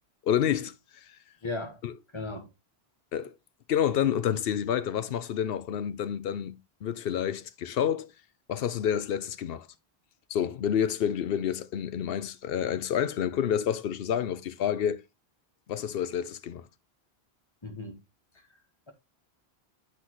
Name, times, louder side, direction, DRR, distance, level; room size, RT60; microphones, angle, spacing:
voice 1, 0.2-0.7 1.8-1.9 3.1-3.3 3.7-8.1 8.5-9.7 10.3-15.0 15.7-16.7, left 9 dB, 65° left, 0.8 m, -29 dB
voice 2, 1.4-1.8 2.1-2.5 17.6-18.0 18.3-18.4, left 2 dB, 30° left, 1.2 m, -36 dB
8.2 x 6.0 x 2.9 m
omnidirectional pair, 1.1 m